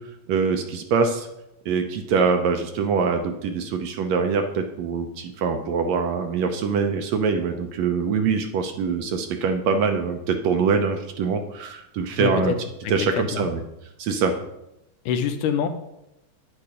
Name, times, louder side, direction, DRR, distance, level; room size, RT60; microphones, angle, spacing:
voice 1, 0.3-1.3 1.6-12.5 12.9-13.6 14.0-14.4, right 5 dB, 70° right, 6 dB, 1.7 m, -24 dB
voice 2, 12.2-12.6 12.8-13.5 15.1-15.7, left 7 dB, 80° left, 8 dB, 2.4 m, -25 dB
9.6 x 8.8 x 5.0 m, 0.85 s
omnidirectional pair, 3.7 m